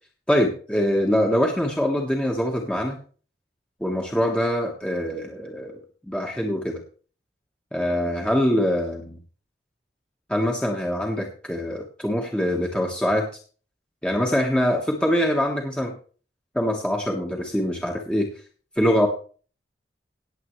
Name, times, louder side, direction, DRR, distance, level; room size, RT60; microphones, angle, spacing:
voice 1, 0.3-3.0 3.8-5.8 6.1-6.8 7.7-9.2 10.3-13.3 14.0-15.9 16.5-18.3 18.8-19.1, equal, 5° left, 0 dB, 1.3 m, -23 dB
18.0 x 7.8 x 3.2 m, 0.40 s
head